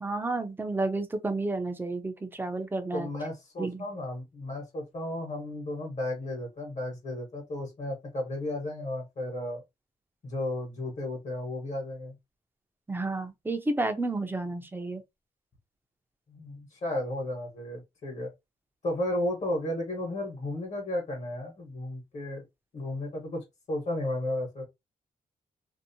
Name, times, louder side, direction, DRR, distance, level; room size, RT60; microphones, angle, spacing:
voice 1, 0.0-3.1 3.6-3.8 12.9-15.0, right 2 dB, 15° right, 0.5 m, -31 dB
voice 2, 2.9-9.6 10.2-12.2 16.3-18.3 18.8-22.4 22.7-24.6, left 1 dB, 50° left, 1.2 m, -34 dB
2.6 x 2.1 x 2.6 m
wide cardioid pair, 130°, 15 cm